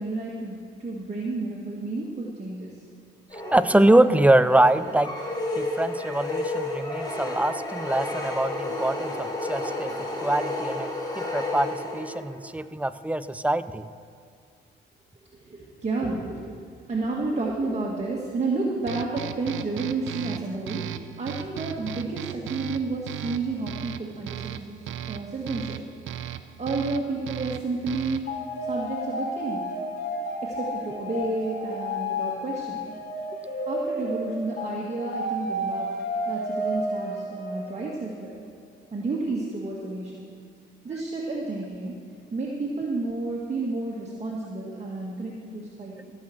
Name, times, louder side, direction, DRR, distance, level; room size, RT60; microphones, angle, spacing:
voice 1, 0.0-2.8 15.4-20.8 21.2-25.8 26.6-29.6 30.4-32.8 33.7-35.9 36.2-38.4 38.9-40.3 40.8-42.0 42.3-46.1, right 3 dB, 35° right, -3 dB, 1.8 m, -31 dB
sound 1, 3.3-12.4, left 2 dB, 20° left, 2.5 m, -31 dB
voice 2, 3.5-5.1 5.5-10.9 11.2-13.9, right 1 dB, 5° right, 13 dB, 0.5 m, -23 dB
sound 2, 18.9-28.4, right 10 dB, 75° right, 0.6 m, -37 dB
sound 3, 28.2-38.0, equal, 50° left, 3.3 m, -31 dB
16.5 x 5.7 x 7.8 m, 2.3 s
cardioid pair, 90°, 20 cm